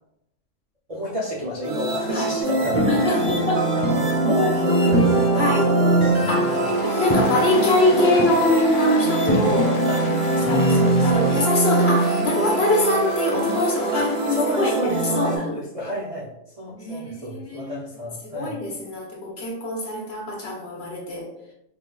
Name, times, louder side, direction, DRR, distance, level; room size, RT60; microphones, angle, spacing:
voice 1, 0.9-3.3 3.7-6.7 9.9-11.4 13.9-16.3 16.6-18.6, equal, 65° right, -4 dB, 0.3 m, -31 dB
sound 1, 1.6-15.4, right 3 dB, 80° right, 1.1 m, -24 dB
sound 2, 2.4-11.4, equal, 15° left, 1.2 m, -24 dB
voice 2, 2.9-3.7 5.4-5.6 6.3-6.5 7.0-9.8 10.5-10.7 11.0-15.5 16.7-17.7 18.3-21.3, left 2 dB, 55° left, -2 dB, 0.9 m, -23 dB
Applause, 6.3-15.0, left 2 dB, 85° left, 1.0 m, -36 dB
4.2 x 2.3 x 2.3 m, 0.83 s
omnidirectional pair, 1.4 m